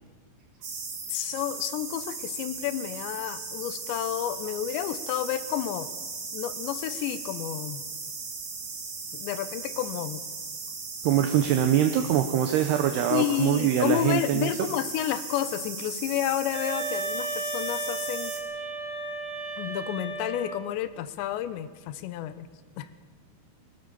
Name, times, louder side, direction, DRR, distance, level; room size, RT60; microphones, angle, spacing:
sound 1, 0.6-18.4, right 4 dB, 50° right, 4.6 m, -37 dB
voice 1, 1.1-5.9 6.3-7.8 9.1-10.2 13.1-18.3 19.6-22.5 22.8-22.9, left 11 dB, 80° left, 12 dB, 2.9 m, -30 dB
voice 2, 11.0-14.5, right 10 dB, 75° right, 7 dB, 2.5 m, -23 dB
sound 2, 16.5-20.7, right 3 dB, 15° right, 4.4 m, -34 dB
22.0 x 18.0 x 6.9 m, 1.3 s
omnidirectional pair, 5.5 m